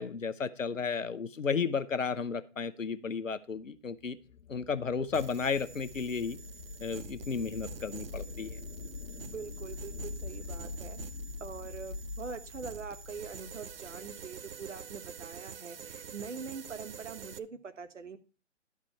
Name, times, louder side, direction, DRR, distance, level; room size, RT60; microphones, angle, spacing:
voice 1, 0.0-4.2 4.5-6.4 6.8-8.6, left 5 dB, 85° left, 12 dB, 0.9 m, -33 dB
sound 1, 4.0-14.1, left 3 dB, 65° left, 1.4 m, -44 dB
sound 2, 5.1-17.4, right 6 dB, 50° right, 0.5 m, -47 dB
voice 2, 9.2-11.0 11.4-18.2, right 5 dB, 70° right, 10 dB, 1.3 m, -43 dB
12.0 x 5.0 x 5.5 m, 0.35 s
figure-of-eight pair, 140°, 38 cm